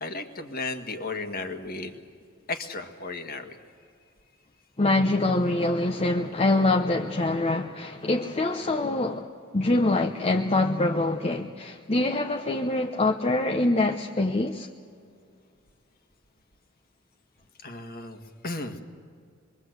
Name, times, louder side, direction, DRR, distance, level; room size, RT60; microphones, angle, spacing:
voice 1, 0.0-2.0 2.5-3.6 17.6-18.8, left 3 dB, 45° left, 1.8 m, -34 dB
voice 2, 4.8-14.7, left 2 dB, 30° left, 0.8 m, -25 dB
26.5 x 22.5 x 8.0 m
head